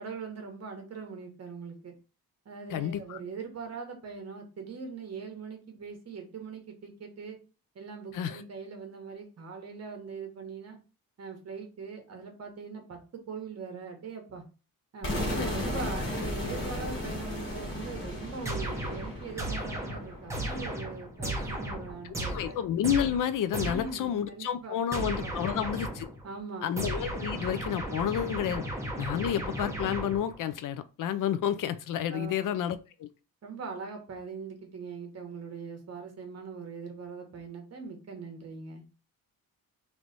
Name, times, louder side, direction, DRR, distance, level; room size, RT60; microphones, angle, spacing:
voice 1, 0.0-1.9 2.4-7.4 7.7-10.8 11.2-14.4 14.9-22.6 23.6-25.3 26.2-26.7 27.9-28.1 32.1-32.5 33.4-38.8, right 5 dB, 45° right, 1.1 m, -41 dB
voice 2, 2.7-3.2 8.1-8.4 15.4-15.5 22.3-26.1 26.6-28.6 29.0-33.1, left 9 dB, 60° left, 0.5 m, -30 dB
sound 1, 15.0-20.9, left 1 dB, 35° left, 1.4 m, -35 dB
sound 2, 18.4-24.1 24.9-26.2 26.8-30.4, right 1 dB, 10° right, 0.8 m, -35 dB
3.2 x 3.1 x 3.9 m
wide cardioid pair, 180°, 36 cm